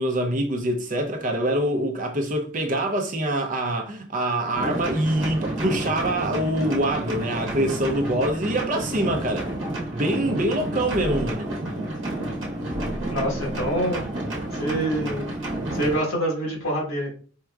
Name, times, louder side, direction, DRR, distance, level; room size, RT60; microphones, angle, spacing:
voice 1, 0.0-9.5 9.9-11.5, right 1 dB, 35° right, 0.6 m, -25 dB
sound 1, 4.5-16.0, right 1 dB, 60° right, 1.0 m, -30 dB
sound 2, 8.9-9.2 10.8-11.3 12.6-13.8, equal, 50° left, 0.9 m, -36 dB
voice 2, 13.1-14.0 14.5-15.3 15.7-17.1, right 1 dB, 80° left, 1.5 m, -26 dB
4.5 x 2.8 x 2.3 m
head